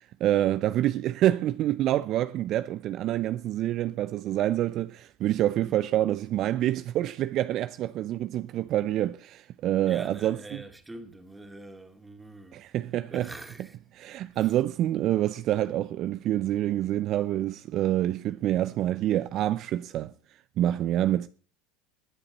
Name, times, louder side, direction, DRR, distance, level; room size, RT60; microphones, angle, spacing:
voice 1, 0.0-10.6 12.5-13.3 13.9-20.1 20.6-21.3, right 13 dB, 50° right, 0.6 m, -27 dB
voice 2, 5.5-6.0 9.9-12.7 13.1-13.8 14.3-14.6, right 1 dB, 10° right, 2.6 m, -45 dB
21.5 x 7.9 x 4.1 m
hypercardioid pair, 80°, 0 cm